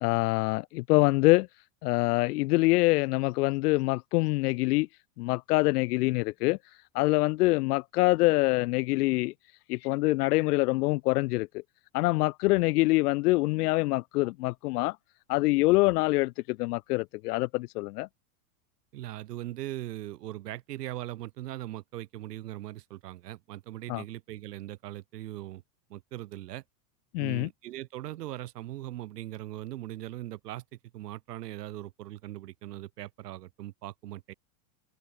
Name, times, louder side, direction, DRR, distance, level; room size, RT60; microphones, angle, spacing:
voice 1, 0.0-1.5 1.8-4.9 5.2-6.6 6.9-9.3 9.7-11.6 11.9-15.0 15.3-18.1 23.9-24.0 27.1-27.5, left 21 dB, 75° left, 0.6 m, -25 dB
voice 2, 18.9-25.6 25.9-26.6 27.2-34.3, right 15 dB, 90° right, 3.5 m, -40 dB
supercardioid pair, 150°, 47 cm